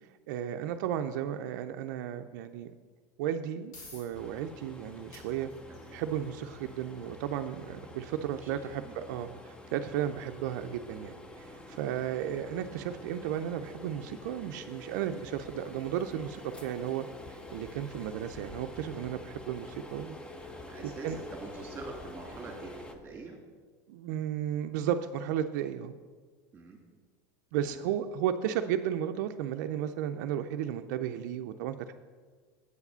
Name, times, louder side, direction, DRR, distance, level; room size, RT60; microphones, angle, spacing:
voice 1, 0.0-2.7 3.2-5.5 5.9-20.2 21.0-21.2 23.9-26.0 27.5-31.9, right 10 dB, 70° right, 7 dB, 0.4 m, -34 dB
sound 1, 3.7-18.1, left 2 dB, 85° left, 2.6 m, -61 dB
sound 2, 4.1-22.9, left 2 dB, 10° left, 0.5 m, -47 dB
voice 2, 8.4-9.0 15.1-15.3 20.7-23.4 26.5-26.8 27.6-27.9, right 3 dB, 20° right, 0 dB, 2.0 m, -45 dB
8.1 x 4.8 x 6.7 m, 1.5 s
supercardioid pair, 155°, 10 cm